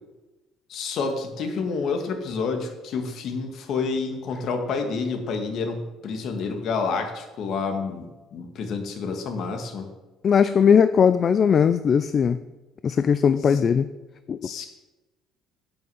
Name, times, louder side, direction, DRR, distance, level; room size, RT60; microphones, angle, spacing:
voice 1, 0.7-9.9 13.5-13.6 14.4-14.7, left 4 dB, 55° left, 5 dB, 2.1 m, -29 dB
voice 2, 10.2-12.4 12.8-13.9 14.3-14.5, left 7 dB, 40° left, 12 dB, 0.4 m, -19 dB
11.5 x 6.9 x 7.9 m, 1.1 s
cardioid pair, 120°, 0 cm